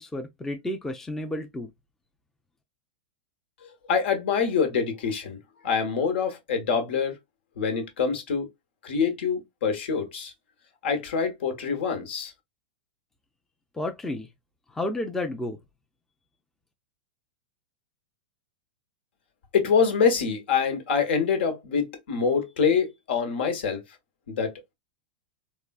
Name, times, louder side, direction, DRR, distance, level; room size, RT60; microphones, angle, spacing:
voice 1, 0.0-1.7 13.7-14.3 14.7-15.6, left 1 dB, 5° left, 0.4 m, -31 dB
voice 2, 3.6-5.4 5.6-7.1 7.6-8.5 8.8-10.3 10.8-12.3 19.5-23.8 24.3-24.5, left 6 dB, 80° left, 1.3 m, -25 dB
3.6 x 2.4 x 2.3 m
supercardioid pair, 140°, 6 cm